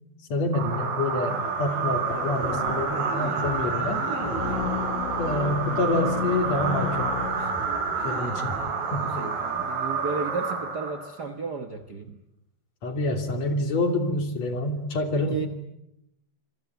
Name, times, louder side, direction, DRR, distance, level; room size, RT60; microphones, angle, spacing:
voice 1, 0.3-4.0 5.2-7.1 8.0-8.6 8.9-9.1 12.8-15.4, left 2 dB, 50° left, 7 dB, 3.9 m, -27 dB
sound 1, 0.5-11.3, right 5 dB, 70° right, 6.3 m, -29 dB
sound 2, 4.2-8.1, left 10 dB, 65° left, 2.4 m, -33 dB
voice 2, 7.4-8.2 9.0-12.2 15.1-15.5, right 4 dB, 90° right, 8 dB, 0.9 m, -35 dB
27.0 x 22.5 x 9.5 m, 0.85 s
omnidirectional pair, 4.3 m